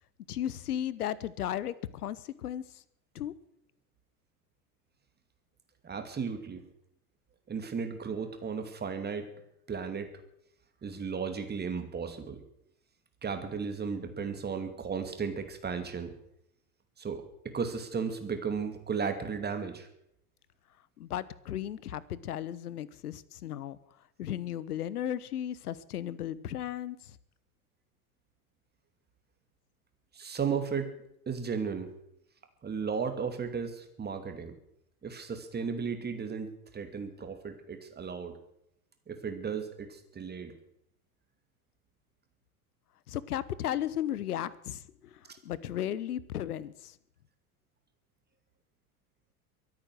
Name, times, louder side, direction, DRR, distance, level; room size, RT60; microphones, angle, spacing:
voice 1, 0.3-2.8 3.1-3.3 21.0-23.8 24.2-27.2 43.1-47.0, left 11 dB, 75° left, 19 dB, 1.1 m, -35 dB
voice 2, 5.8-6.7 7.5-9.3 9.7-10.1 10.8-12.4 13.2-16.1 17.0-19.9 30.1-30.9 31.3-31.9 32.6-34.5 35.0-38.4 39.1-40.5 45.3-45.4, right 6 dB, 20° right, 8 dB, 2.6 m, -35 dB
23.0 x 8.9 x 6.4 m, 0.76 s
hypercardioid pair, 90°, 46 cm